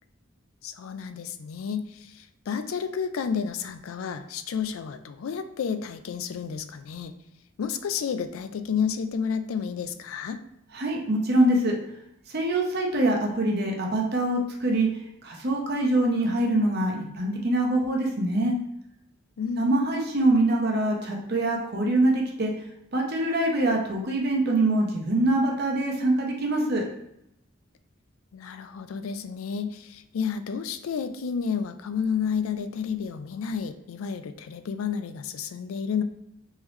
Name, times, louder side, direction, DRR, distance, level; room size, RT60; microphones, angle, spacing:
voice 1, 0.6-7.1 7.6-10.4 19.4-19.7 28.3-36.0, left 6 dB, 90° left, 10 dB, 0.4 m, -31 dB
voice 2, 10.7-11.8 12.3-14.9 15.2-18.5 19.6-22.5 22.9-26.8, right 1 dB, 50° right, 0 dB, 0.8 m, -24 dB
3.7 x 3.0 x 3.1 m, 0.79 s
head